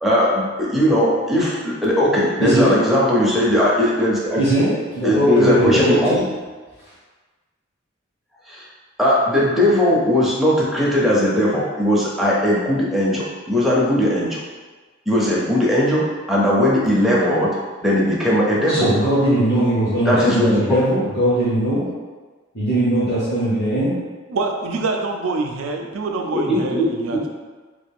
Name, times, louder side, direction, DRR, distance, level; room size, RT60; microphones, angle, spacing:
voice 1, 0.0-4.4 5.0-6.2 8.5-8.7 9.0-14.4 15.1-17.5 17.8-18.9 20.1-20.8 26.3-27.3, left 1 dB, ahead, -6 dB, 0.5 m, -18 dB
voice 2, 2.4-2.7 4.4-6.2 18.7-21.9 22.5-24.0, right 1 dB, 50° left, -12 dB, 1.0 m, -19 dB
voice 3, 24.3-27.3, right 3 dB, 85° right, 3 dB, 0.4 m, -25 dB
3.2 x 2.4 x 3.4 m, 1.4 s
head